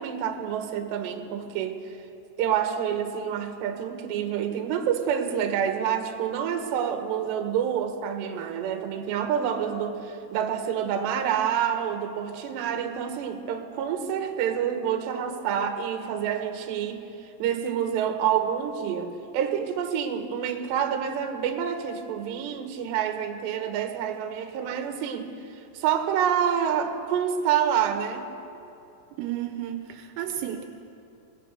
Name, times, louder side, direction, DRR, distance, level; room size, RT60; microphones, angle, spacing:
voice 1, 0.0-1.8 2.4-25.3 25.7-28.3, right 8 dB, 65° right, 5 dB, 3.4 m, -28 dB
voice 2, 29.2-30.7, right 11 dB, 80° right, 6 dB, 3.5 m, -32 dB
26.0 x 20.5 x 6.7 m, 2.8 s
omnidirectional pair, 5.9 m